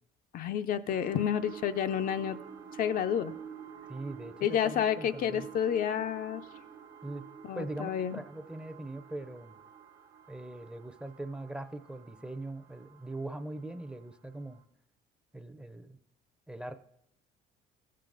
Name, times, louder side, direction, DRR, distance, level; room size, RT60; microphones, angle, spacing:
voice 1, 0.3-2.4 2.8-3.3 4.4-6.4 7.4-8.2, left 9 dB, 55° left, 9 dB, 0.5 m, -30 dB
sound 1, 0.9-14.0 14.5-14.6, right 8 dB, 70° right, 1.2 m, -49 dB
voice 2, 3.9-5.5 7.0-7.2 7.5-9.6 10.3-14.6 15.3-16.0 16.5-16.8, right 2 dB, 5° right, 10 dB, 0.6 m, -41 dB
14.5 x 7.5 x 3.9 m, 0.75 s
cardioid pair, 110°, 17 cm